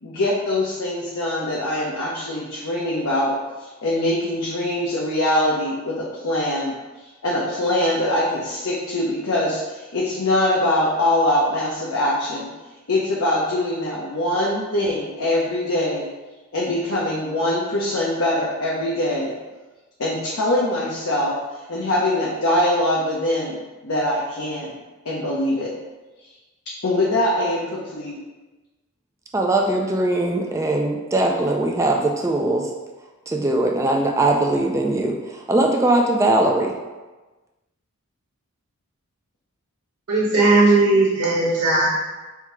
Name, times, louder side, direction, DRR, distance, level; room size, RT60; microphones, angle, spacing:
voice 1, 0.0-3.3 3.6-6.7 7.2-12.5 12.9-16.0 16.5-19.3 20.0-21.4 21.7-23.6 23.8-24.7 25.0-25.7 26.8-28.2, left 1 dB, 70° left, -5 dB, 0.7 m, -23 dB
voice 2, 29.3-32.7 33.3-36.7, right 2 dB, 15° right, 1 dB, 0.3 m, -20 dB
voice 3, 40.1-42.0, right 2 dB, 85° right, -6 dB, 1.1 m, -17 dB
3.6 x 2.8 x 4.6 m, 1.2 s
head